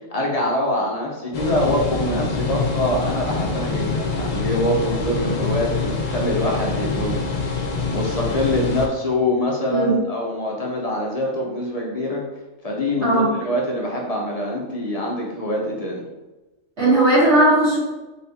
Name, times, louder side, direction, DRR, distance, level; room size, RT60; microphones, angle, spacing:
voice 1, 0.1-12.2 12.6-16.0, left 1 dB, 40° left, -2 dB, 0.6 m, -24 dB
sound 1, 1.3-8.9, left 4 dB, 85° left, 0.3 m, -25 dB
voice 2, 9.7-10.0 13.0-13.3 16.8-17.8, right 2 dB, 55° right, -9 dB, 1.7 m, -17 dB
4.1 x 2.4 x 4.0 m, 1.1 s
omnidirectional pair, 1.4 m